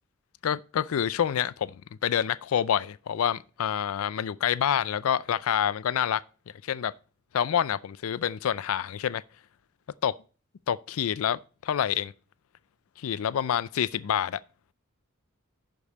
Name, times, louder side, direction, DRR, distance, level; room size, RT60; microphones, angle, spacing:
voice 1, 0.4-6.2 6.6-6.9 7.3-9.2 10.0-10.1 10.7-12.1 13.0-14.4, left 9 dB, 75° left, 0.4 m, -27 dB
11.5 x 5.3 x 4.1 m
head